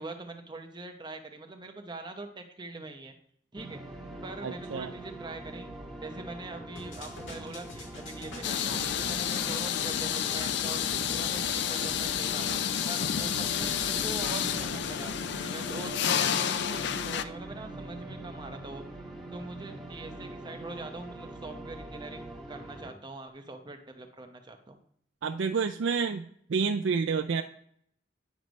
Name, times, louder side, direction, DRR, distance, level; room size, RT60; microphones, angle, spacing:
voice 1, 0.0-3.1 3.5-3.8 4.2-5.7 6.0-10.8 11.1-12.5 12.9-18.8 19.3-24.8, right 2 dB, 25° right, 5 dB, 0.8 m, -43 dB
sound 1, 3.5-22.9, right 1 dB, ahead, 1.5 m, -43 dB
voice 2, 4.4-4.9 25.2-27.4, right 5 dB, 75° right, 4 dB, 0.4 m, -29 dB
sound 2, 6.8-15.1, left 2 dB, 90° left, 1.7 m, -45 dB
sound 3, 8.4-17.2, left 9 dB, 65° left, 0.4 m, -30 dB
9.3 x 3.2 x 5.1 m, 0.66 s
head